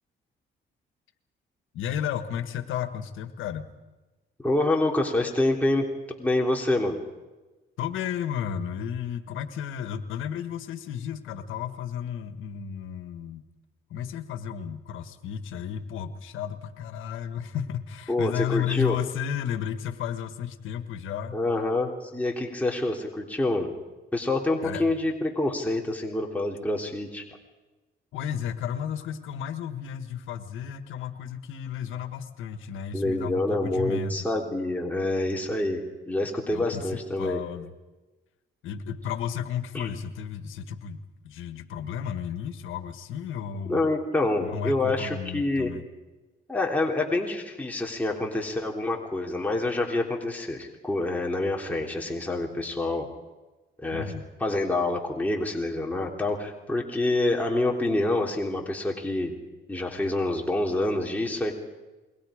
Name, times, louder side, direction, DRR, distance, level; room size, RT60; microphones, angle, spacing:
voice 1, 1.7-3.7 7.8-13.4 13.9-21.4 24.6-24.9 28.1-34.2 36.5-37.7 38.6-43.8 44.4-45.8 53.9-54.2, left 8 dB, 85° left, 9 dB, 1.6 m, -33 dB
voice 2, 4.4-5.9 6.2-7.0 18.1-19.0 21.3-23.7 24.1-27.2 32.9-37.4 39.7-39.9 43.7-45.7 46.5-53.1 53.8-54.1 54.4-59.3 59.7-61.5, left 2 dB, 10° left, -1 dB, 3.2 m, -27 dB
28.5 x 22.5 x 5.1 m, 1.2 s
cardioid pair, 90°, 20 cm